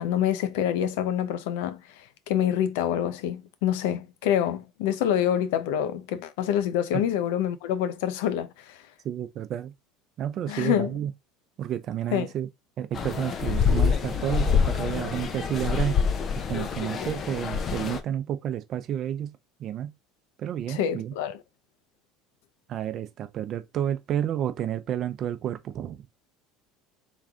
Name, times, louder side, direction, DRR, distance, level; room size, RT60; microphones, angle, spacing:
voice 1, 0.0-8.8 10.5-10.9 12.1-12.3 20.7-21.4, left 10 dB, 80° left, 0.6 m, -26 dB
voice 2, 9.0-9.7 10.2-11.1 11.6-12.5 12.8-16.0 16.5-19.9 20.4-21.1 22.7-26.0, right 10 dB, 50° right, 0.6 m, -30 dB
sound 1, 12.9-18.0, left 6 dB, 40° left, 0.7 m, -26 dB
3.6 x 3.2 x 3.6 m
supercardioid pair, 105°, 0 cm